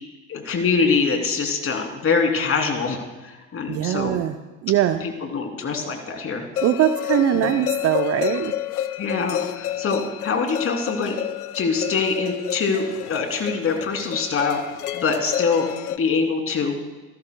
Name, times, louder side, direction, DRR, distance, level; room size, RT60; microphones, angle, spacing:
voice 1, 0.3-4.2 5.0-6.4 7.3-7.6 9.0-11.2 11.5-12.8 13.1-14.6 14.9-15.7 16.0-16.8, left 5 dB, 30° left, 3 dB, 3.0 m, -24 dB
voice 2, 3.7-4.4 4.6-5.0 6.6-8.5, right 11 dB, 35° right, 9 dB, 0.7 m, -21 dB
sound 1, 6.6-16.0, left 12 dB, 80° left, 0.7 m, -30 dB
28.0 x 12.0 x 2.3 m, 1.2 s
figure-of-eight pair, 75°, 45 cm